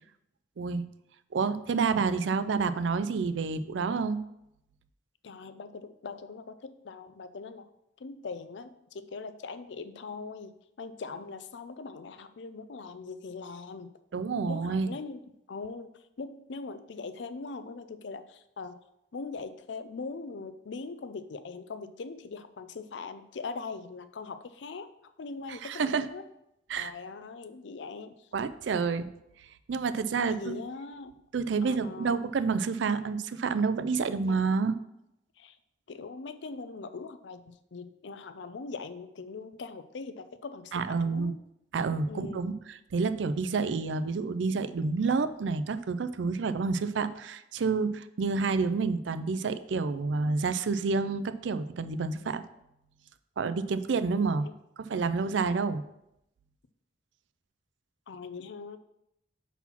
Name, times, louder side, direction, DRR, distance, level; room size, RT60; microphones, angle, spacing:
voice 1, 0.6-0.9 1.3-4.2 14.1-14.9 25.5-26.1 26.7-26.9 28.3-29.1 29.7-30.6 31.3-34.8 40.7-41.4 41.7-52.4 53.4-54.5 54.8-55.8, right 4 dB, 85° right, 13 dB, 0.4 m, -29 dB
voice 2, 5.2-7.7 8.0-13.9 14.5-15.2 15.5-15.9 16.2-18.8 19.1-24.9 25.2-26.2 26.8-28.3 30.2-31.1 31.6-32.3 34.3-34.4 35.4-35.6 35.9-40.7 41.0-41.4 42.1-42.5 54.4-54.5 58.1-58.8, left 4 dB, 75° left, 11 dB, 0.5 m, -41 dB
5.8 x 4.1 x 5.8 m, 0.83 s
head